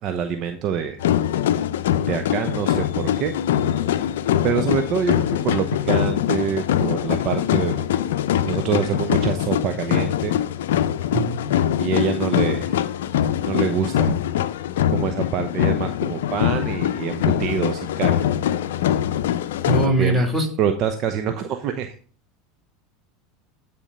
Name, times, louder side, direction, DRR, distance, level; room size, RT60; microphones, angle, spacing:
voice 1, 0.0-1.0 2.0-3.3 4.4-7.9 8.4-10.4 11.7-12.7 13.4-14.2 14.9-18.3 19.8-20.2 20.6-21.9, right 7 dB, 50° right, 7 dB, 0.8 m, -25 dB
sound 1, 1.0-19.9, left 10 dB, 75° left, 0.5 m, -23 dB
voice 2, 11.1-11.6 19.6-20.5, right 2 dB, 15° right, 2 dB, 3.6 m, -22 dB
10.0 x 4.5 x 5.5 m, 0.43 s
hypercardioid pair, 85°, 0 cm